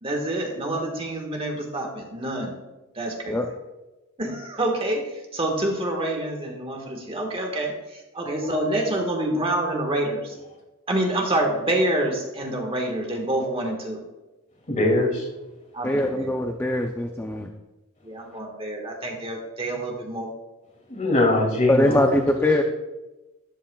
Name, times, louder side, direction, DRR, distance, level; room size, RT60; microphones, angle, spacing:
voice 1, 0.0-2.5 3.0-3.4 4.2-5.0 5.3-7.7 8.1-10.3 10.9-14.0 15.7-16.3 18.0-20.3, right 1 dB, 25° right, 1 dB, 1.6 m, -27 dB
voice 2, 14.7-15.3 20.9-22.1, left 2 dB, 35° left, -1 dB, 2.6 m, -22 dB
voice 3, 15.8-17.5 21.7-22.6, left 1 dB, 10° left, 3 dB, 0.5 m, -22 dB
13.0 x 11.0 x 2.3 m, 1.1 s
head